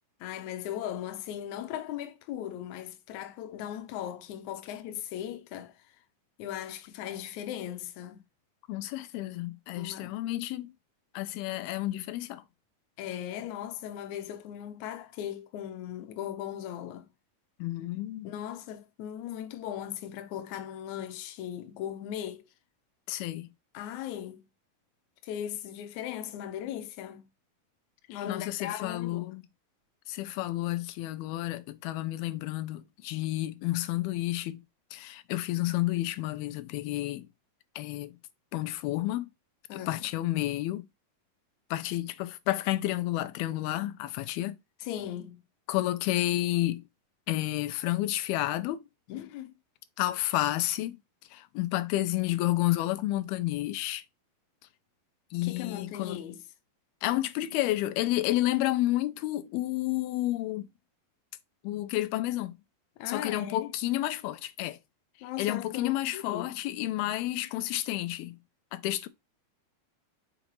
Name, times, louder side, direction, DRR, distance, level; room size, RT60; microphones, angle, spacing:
voice 1, 0.2-6.0 6.4-8.2 9.8-10.2 13.0-17.1 18.2-22.4 23.7-24.4 25.2-27.3 28.1-29.3 39.7-40.0 44.8-45.4 49.1-49.5 55.4-56.4 63.0-63.7 65.2-66.5, left 11 dB, 70° left, 1.9 m, -38 dB
voice 2, 8.7-10.7 11.1-12.4 17.6-18.3 23.1-23.5 28.3-29.5 30.1-34.6 34.9-37.3 37.8-38.1 38.5-39.3 39.7-40.9 41.7-44.6 45.7-46.8 47.3-48.8 50.0-51.0 51.3-54.0 55.3-56.2 57.0-60.7 61.6-62.5 63.1-64.8 65.4-68.4 68.7-69.1, left 16 dB, 90° left, 2.6 m, -30 dB
6.3 x 4.9 x 3.1 m
omnidirectional pair, 4.3 m